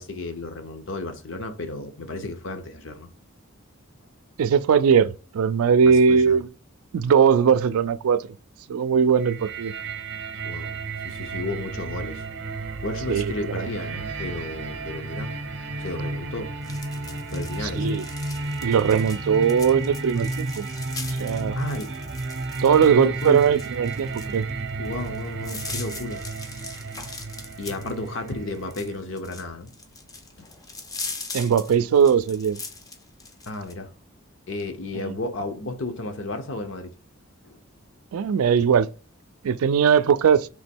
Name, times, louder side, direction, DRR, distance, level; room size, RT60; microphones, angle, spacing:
voice 1, 0.0-3.1 5.8-6.4 10.4-10.8 11.0-12.2 12.8-15.3 15.8-16.5 17.3-18.0 21.6-21.9 22.7-23.4 24.8-26.2 27.6-29.7 30.4-30.5 33.5-33.9 34.5-36.9 37.4-37.6, left 2 dB, 60° left, 0.8 m, -33 dB
voice 2, 4.4-6.5 6.9-8.3 8.7-9.7 13.1-13.7 17.6-18.1 18.6-20.7 21.2-21.6 22.6-24.5 31.3-32.6 34.9-35.1 38.1-38.9 39.4-40.5, right 7 dB, 85° right, 0.4 m, -20 dB
sound 1, 9.2-29.0, right 3 dB, 55° right, 0.7 m, -32 dB
sound 2, 16.6-33.7, left 3 dB, 15° left, 0.5 m, -40 dB
3.6 x 3.0 x 4.4 m
head